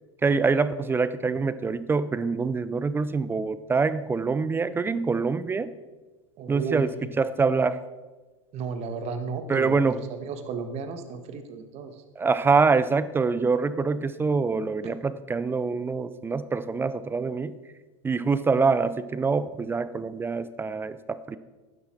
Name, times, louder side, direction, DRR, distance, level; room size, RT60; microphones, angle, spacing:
voice 1, 0.2-5.7 6.5-7.8 9.5-10.0 12.2-17.6 18.0-21.4, right 4 dB, 15° right, 15 dB, 0.5 m, -25 dB
voice 2, 6.4-6.9 8.5-11.9, right 5 dB, 40° right, 8 dB, 1.5 m, -34 dB
11.5 x 10.0 x 4.5 m, 1.2 s
hypercardioid pair, 100°, 16 cm